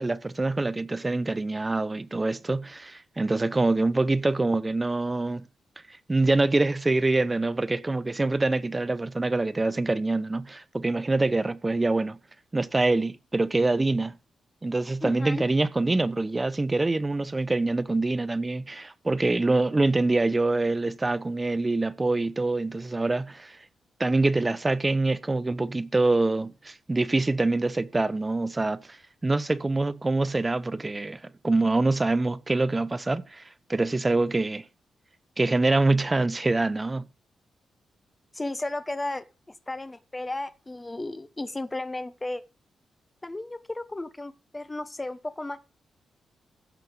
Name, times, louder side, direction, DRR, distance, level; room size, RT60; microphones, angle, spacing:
voice 1, 0.0-5.4 6.1-12.2 12.5-14.2 14.6-23.6 24.0-29.0 29.2-33.4 33.7-34.6 35.4-37.0, right 2 dB, 15° right, 0.8 m, -25 dB
voice 2, 15.0-15.5 38.3-42.4 43.2-45.6, left 2 dB, 15° left, 1.1 m, -34 dB
15.0 x 5.6 x 6.8 m
wide cardioid pair, 145°, 0 cm